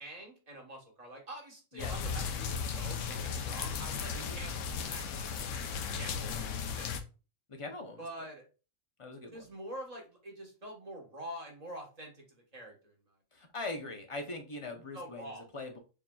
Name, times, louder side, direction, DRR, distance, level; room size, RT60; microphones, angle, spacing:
voice 1, 0.0-5.0 5.9-7.0 8.0-8.4 9.3-13.1 14.9-15.4, right 1 dB, 30° right, 0 dB, 1.3 m, -46 dB
sound 1, 1.8-7.0, left 6 dB, 75° left, 1.0 m, -36 dB
voice 2, 7.5-8.0 9.0-9.5 13.3-15.8, left 2 dB, 40° left, 3 dB, 0.5 m, -42 dB
7.1 x 2.8 x 2.3 m, 0.34 s
omnidirectional pair, 1.4 m